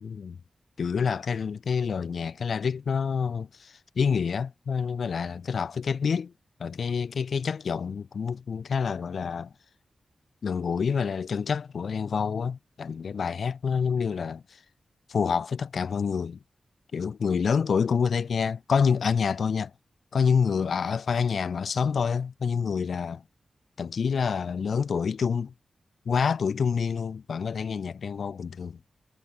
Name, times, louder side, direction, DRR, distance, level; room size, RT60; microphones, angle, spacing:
voice 1, 0.0-0.4 0.8-6.3 6.6-9.5 10.4-14.6 15.1-16.4 16.9-19.7 20.1-23.2 23.8-25.5 26.0-28.8, left 6 dB, 70° left, 1.0 m, -27 dB
wide cardioid pair, 155°, 0 cm